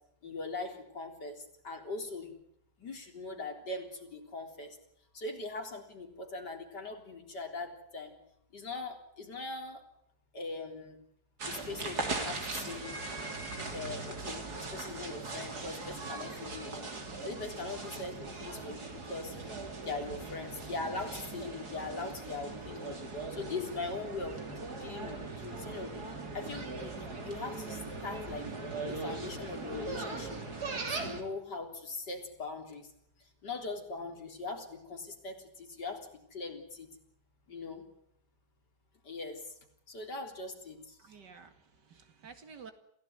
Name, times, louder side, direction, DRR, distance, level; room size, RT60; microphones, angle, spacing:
voice 1, 0.2-2.3 2.8-4.8 5.1-8.1 8.5-9.8 10.3-11.0 11.5-12.9 13.7-16.9 17.2-19.4 19.9-23.0 23.3-24.5 24.8-25.9 26.3-28.5 28.9-30.4 30.9-32.9 33.4-36.9 37.5-37.9 39.0-39.4 39.9-41.0, left 3 dB, 80° left, 3 dB, 4.4 m, -41 dB
sound 1, 11.4-31.2, right 3 dB, 70° right, 3.8 m, -40 dB
voice 2, 41.0-42.7, right 5 dB, 85° right, 8 dB, 2.9 m, -52 dB
27.0 x 16.5 x 9.5 m, 0.74 s
omnidirectional pair, 1.8 m